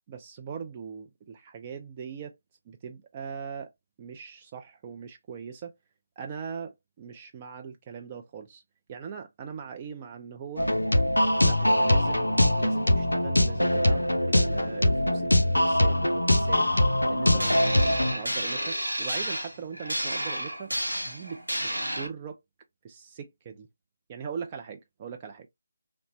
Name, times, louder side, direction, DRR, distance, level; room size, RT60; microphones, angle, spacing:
voice 1, 0.1-2.3 2.7-3.7 4.0-5.8 6.2-8.6 8.9-10.7 11.4-16.7 17.1-20.7 21.1-22.4 22.8-23.7 24.1-25.5, right 6 dB, 25° right, 0.3 m, -40 dB
sound 1, 10.6-18.1, left 1 dB, 80° left, 0.4 m, -23 dB
sound 2, 17.4-22.1, equal, 85° right, 0.9 m, -31 dB
3.0 x 2.1 x 2.7 m
figure-of-eight pair, 155°, 0 cm